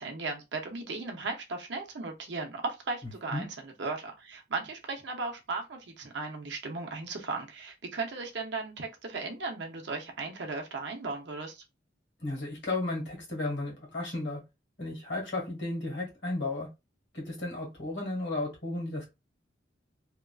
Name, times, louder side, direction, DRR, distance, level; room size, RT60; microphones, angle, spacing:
voice 1, 0.0-11.6, right 3 dB, 60° right, 0.7 m, -36 dB
voice 2, 12.2-14.4 14.8-16.7 17.1-19.1, left 2 dB, 65° left, 1.6 m, -34 dB
2.9 x 2.4 x 2.3 m
head